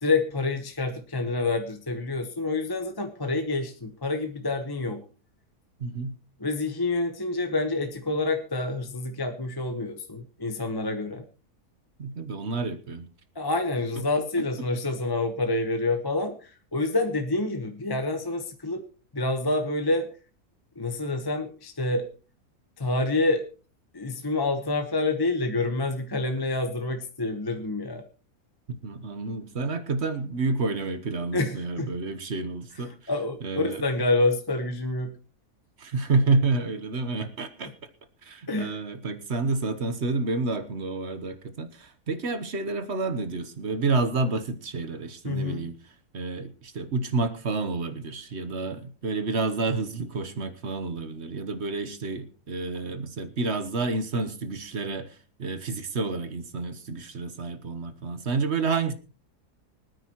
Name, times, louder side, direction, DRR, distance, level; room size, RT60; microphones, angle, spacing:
voice 1, 0.0-5.0 6.4-11.2 13.3-18.8 19.1-20.1 20.8-22.1 22.8-23.4 23.9-28.0 31.3-32.0 32.8-35.1 38.5-38.8 45.2-45.6, left 2 dB, 15° left, 1.0 m, -27 dB
voice 2, 5.8-6.1 12.0-13.1 14.0-14.1 28.7-32.9 33.4-33.8 35.8-37.7 38.2-45.7 46.1-58.9, right 3 dB, 45° right, 1.3 m, -29 dB
24.5 x 9.4 x 3.0 m
omnidirectional pair, 1.7 m